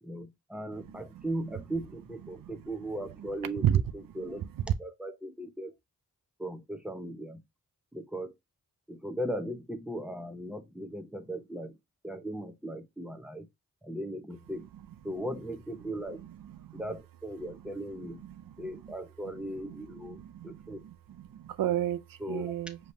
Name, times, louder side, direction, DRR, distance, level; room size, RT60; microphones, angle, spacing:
voice 1, 0.0-4.4 4.8-5.7 6.4-7.4 7.9-8.3 8.9-11.7 12.0-13.5 13.8-14.7 15.0-16.2 16.7-18.2 18.6-20.8 22.2-22.5, right 1 dB, 5° right, 0.9 m, -38 dB
voice 2, 0.9-1.2 3.6-3.8 4.6-4.7 16.4-16.8 18.2-18.8 19.9-22.8, right 11 dB, 65° right, 0.5 m, -32 dB
5.1 x 3.1 x 2.6 m
cardioid pair, 65°, 36 cm